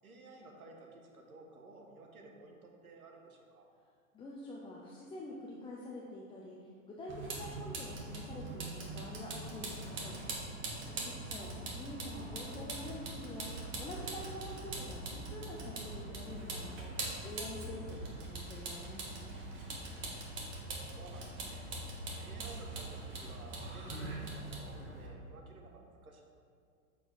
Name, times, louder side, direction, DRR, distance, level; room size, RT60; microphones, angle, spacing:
voice 1, 0.0-3.7 20.5-21.8 22.2-26.2, right 3 dB, 90° right, 1 dB, 1.2 m, -54 dB
voice 2, 4.1-10.2 10.7-19.4, left 2 dB, 10° left, -3 dB, 0.5 m, -47 dB
Vehicle, 7.1-25.1, right 2 dB, 30° right, 1.5 m, -42 dB
sound 1, 12.3-17.4, right 1 dB, 60° right, 1.3 m, -54 dB
7.7 x 4.5 x 4.6 m, 2.3 s
hypercardioid pair, 110°, 42 cm